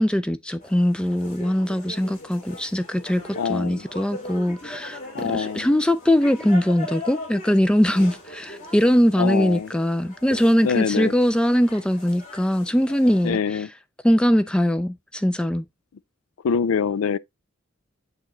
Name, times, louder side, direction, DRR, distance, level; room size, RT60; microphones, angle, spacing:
voice 1, 0.0-3.2 3.5-13.7 14.0-15.6, equal, 5° left, 0.3 m, -21 dB
sound 1, 0.6-13.3, left 1 dB, 40° left, 2.7 m, -40 dB
voice 2, 3.4-3.9 5.1-5.7 9.2-9.7 10.6-11.1 13.2-13.7 16.4-17.2, left 6 dB, 85° left, 0.4 m, -24 dB
8.8 x 3.0 x 3.8 m
head